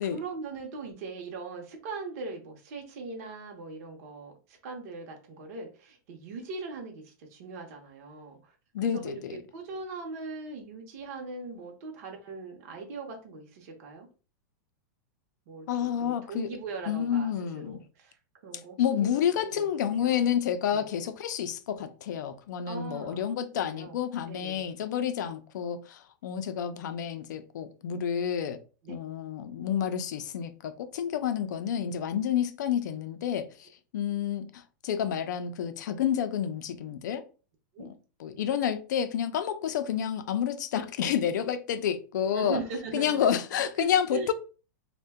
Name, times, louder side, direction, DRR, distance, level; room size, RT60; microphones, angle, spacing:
voice 1, 0.0-8.5 8.8-14.1 15.5-18.2 18.4-19.6 19.9-20.2 20.7-20.9 22.6-23.3 23.7-24.0 24.3-24.7 28.8-29.0 37.7-37.9 42.2-43.3 43.8-44.3, right 3 dB, 50° right, 0.7 m, -40 dB
voice 2, 8.7-9.4 15.7-16.5 16.9-17.8 18.5-28.6 28.9-37.2 37.8-37.9 38.2-42.6 42.9-44.3, left 9 dB, 75° left, 0.4 m, -29 dB
2.6 x 2.1 x 3.4 m
supercardioid pair, 160°, 10 cm